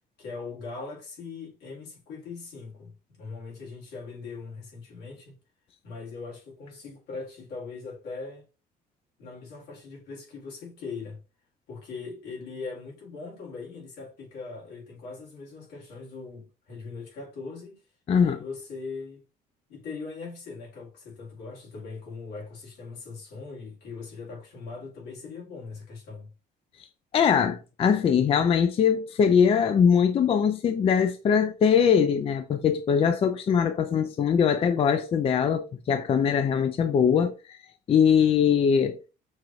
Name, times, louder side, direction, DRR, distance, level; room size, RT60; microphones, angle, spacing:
voice 1, 0.2-5.4 5.8-8.5 9.2-11.2 11.7-17.8 18.2-19.2 19.7-26.3, left 4 dB, 75° left, 2.0 m, -40 dB
voice 2, 27.1-37.6 37.9-39.0, left 7 dB, 35° left, 0.4 m, -22 dB
6.3 x 2.5 x 2.9 m
cardioid pair, 110°, 17 cm